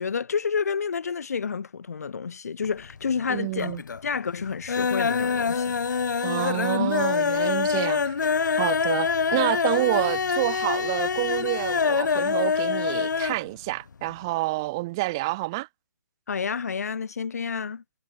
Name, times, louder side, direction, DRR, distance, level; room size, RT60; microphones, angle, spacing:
voice 1, 0.0-3.8 4.0-5.7 16.3-17.8, left 6 dB, 55° left, 3.5 m, -29 dB
sound 1, 2.6-3.3 3.5-4.1 4.4-13.4 13.7-13.8 14.1-14.2, left 5 dB, 75° left, 1.0 m, -25 dB
voice 2, 3.3-3.8 6.2-8.1 8.6-15.7, right 21 dB, 15° right, 0.5 m, -28 dB
hypercardioid pair, 175°, 10 cm